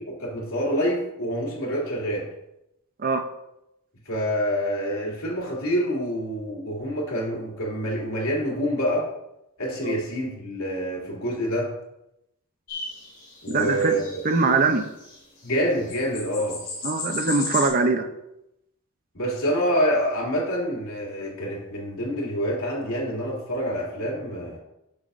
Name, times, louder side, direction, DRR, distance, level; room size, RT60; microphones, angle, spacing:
voice 1, 0.1-2.3 4.0-9.1 9.6-11.7 13.4-14.1 15.4-16.6 19.1-24.6, equal, 75° left, -3 dB, 2.9 m, -27 dB
sound 1, 12.7-15.2 15.5-15.6 15.8-17.7, left 3 dB, 40° left, 2.5 m, -35 dB
voice 2, 13.5-14.0 14.2-14.8 16.8-18.1, right 3 dB, 40° right, 6 dB, 0.7 m, -22 dB
10.5 x 6.9 x 2.6 m, 0.85 s
head